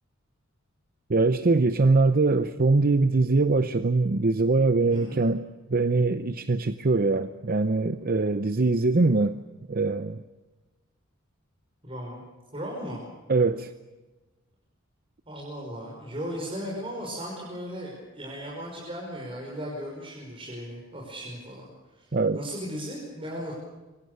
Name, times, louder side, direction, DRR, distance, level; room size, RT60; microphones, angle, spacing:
voice 1, 1.1-9.4 9.7-10.2 13.3-13.7 22.1-22.4, right 3 dB, 45° right, 0.7 m, -23 dB
voice 2, 4.9-5.3 11.8-12.2 12.5-13.0 15.3-22.1 22.3-23.6, equal, 25° right, 5.5 m, -36 dB
26.5 x 24.0 x 6.9 m
head